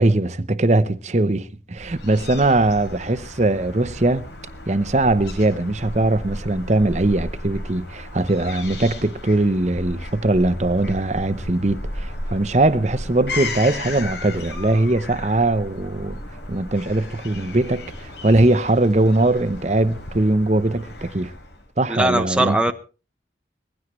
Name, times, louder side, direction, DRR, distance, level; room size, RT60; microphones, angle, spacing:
voice 1, 0.0-4.3 4.7-16.2 16.5-21.3 21.8-22.6, right 2 dB, 40° right, 0.8 m, -20 dB
Fowl / Gull seagull, 1.8-21.7, left 1 dB, 80° left, 4.5 m, -34 dB
voice 2, 21.9-22.7, right 1 dB, 5° right, 0.7 m, -20 dB
21.0 x 16.0 x 3.2 m
head